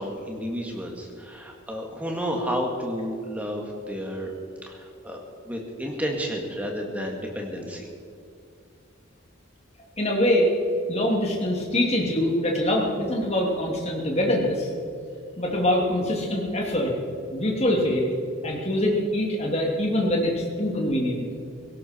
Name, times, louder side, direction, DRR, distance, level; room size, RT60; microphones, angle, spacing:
voice 1, 0.0-4.3 4.6-7.9, equal, 5° right, 1 dB, 2.0 m, -31 dB
voice 2, 10.0-10.5 10.9-14.7 15.4-16.9 17.3-18.1 18.4-21.2, left 1 dB, 30° left, -1 dB, 2.7 m, -24 dB
17.5 x 17.0 x 4.5 m, 2.4 s
head